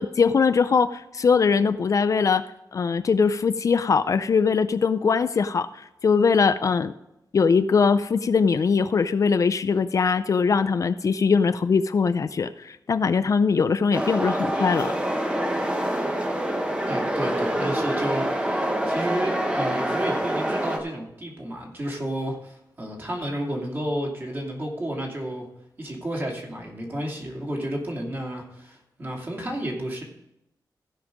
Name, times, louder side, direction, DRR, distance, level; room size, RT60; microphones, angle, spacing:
voice 1, 0.0-6.9 7.3-14.9, left 5 dB, 50° left, 12 dB, 0.4 m, -21 dB
sound 1, 13.9-20.8, right 1 dB, 15° right, 1.1 m, -26 dB
voice 2, 16.9-25.5 25.8-30.0, right 1 dB, 30° right, -1 dB, 2.6 m, -31 dB
15.5 x 5.4 x 5.1 m, 0.85 s
wide cardioid pair, 145°, 7 cm